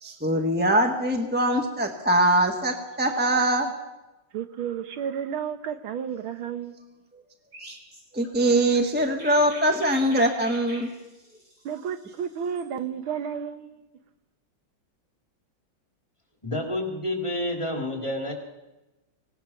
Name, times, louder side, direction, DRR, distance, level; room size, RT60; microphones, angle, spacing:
voice 1, 0.0-3.7 7.6-7.7 8.1-10.9, right 1 dB, 5° right, 1.3 m, -22 dB
voice 2, 4.3-6.8 11.7-13.8, right 8 dB, 85° right, 1.9 m, -32 dB
Chirp tweet, 7.5-12.7, equal, 40° right, 6.9 m, -46 dB
voice 3, 16.4-18.3, left 1 dB, 15° left, 3.1 m, -29 dB
25.5 x 18.5 x 5.9 m
omnidirectional pair, 2.2 m